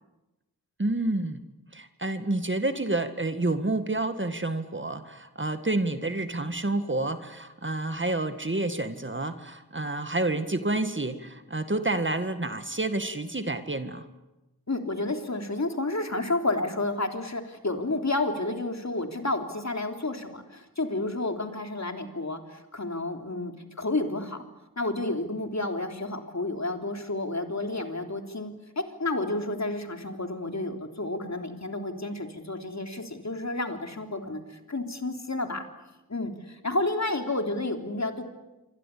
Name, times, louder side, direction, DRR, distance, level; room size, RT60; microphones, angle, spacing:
voice 1, 0.8-1.4 1.7-14.1, right 2 dB, 30° right, 8 dB, 1.9 m, -29 dB
voice 2, 14.7-24.4 24.8-35.6 36.1-38.2, left 2 dB, 45° left, 4 dB, 3.5 m, -31 dB
27.5 x 24.5 x 8.6 m, 1.0 s
wide cardioid pair, 75°, 37 cm